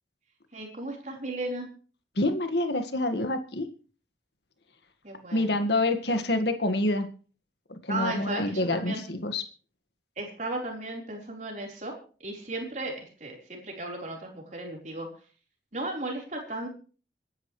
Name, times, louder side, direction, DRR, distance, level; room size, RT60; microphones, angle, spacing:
voice 1, 0.5-1.7 5.0-5.6 7.9-9.0 10.2-15.1 15.7-16.7, right 2 dB, 40° right, 0 dB, 4.2 m, -35 dB
voice 2, 2.2-3.7 5.3-7.1 7.7-9.4, left 2 dB, 75° left, 7 dB, 1.8 m, -27 dB
27.0 x 10.5 x 3.2 m, 0.39 s
head